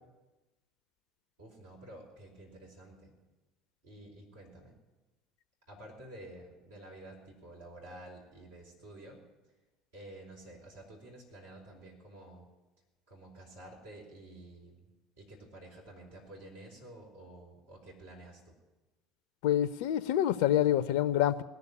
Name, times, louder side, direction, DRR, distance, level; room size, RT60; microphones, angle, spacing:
voice 1, 1.4-3.1 3.8-4.8 5.7-9.2 9.9-12.5 13.1-14.9 15.2-18.5, right 1 dB, 75° right, -3 dB, 4.1 m, -51 dB
voice 2, 19.4-21.4, left 11 dB, 60° left, 15 dB, 0.5 m, -27 dB
19.0 x 6.9 x 9.8 m, 1.1 s
figure-of-eight pair, 65°, 0 cm